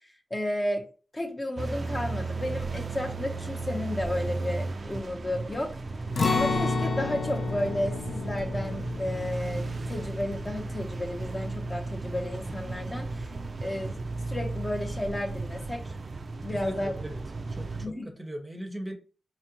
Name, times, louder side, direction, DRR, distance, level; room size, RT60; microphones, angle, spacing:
voice 1, 0.3-0.9 1.1-5.8 6.3-13.3 13.6-14.0 14.3-15.9 16.4-16.9 17.8-18.1, left 1 dB, 25° left, 0.7 m, -32 dB
sound 1, 1.6-17.9, right 3 dB, 50° right, 0.3 m, -35 dB
Acoustic guitar, 6.2-12.1 12.4-12.5 13.0-13.5, left 4 dB, 70° left, 0.4 m, -32 dB
voice 2, 16.5-17.2 17.5-18.9, right 1 dB, 15° right, 0.7 m, -39 dB
4.2 x 2.4 x 2.8 m
wide cardioid pair, 100°, 0 cm